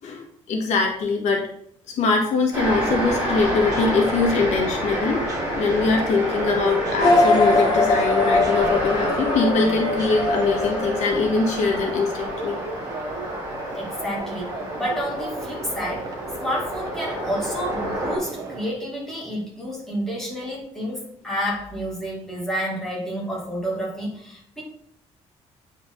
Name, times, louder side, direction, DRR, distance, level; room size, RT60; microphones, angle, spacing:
voice 1, 0.0-1.5 2.0-5.3 5.6-12.6 13.7-13.8, left 4 dB, 75° left, 1 dB, 1.8 m, -22 dB
sound 1, 2.5-18.2, equal, 15° right, 3.3 m, -29 dB
sound 2, 2.7-18.7, right 2 dB, 30° right, 1.2 m, -34 dB
sound 3, 7.0-11.8, left 2 dB, 35° left, 1.0 m, -22 dB
voice 2, 13.7-24.6, equal, 5° left, -5 dB, 2.5 m, -30 dB
9.1 x 4.6 x 3.9 m, 0.68 s
cardioid pair, 170°, 12 cm